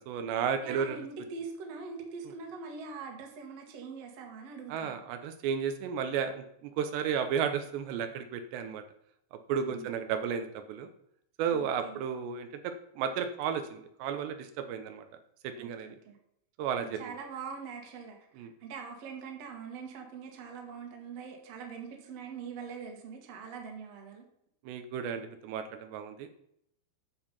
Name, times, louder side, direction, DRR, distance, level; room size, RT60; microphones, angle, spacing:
voice 1, 0.0-1.0 4.7-8.8 9.3-10.9 11.4-15.1 15.4-16.0 16.6-17.1 18.4-18.5 24.6-26.3, right 7 dB, 85° right, 8 dB, 3.1 m, -33 dB
voice 2, 0.6-5.0 9.6-9.9 11.5-12.0 15.6-16.2 16.7-24.2, right 5 dB, 50° right, 3 dB, 2.2 m, -43 dB
10.0 x 7.1 x 5.5 m, 0.73 s
omnidirectional pair, 4.9 m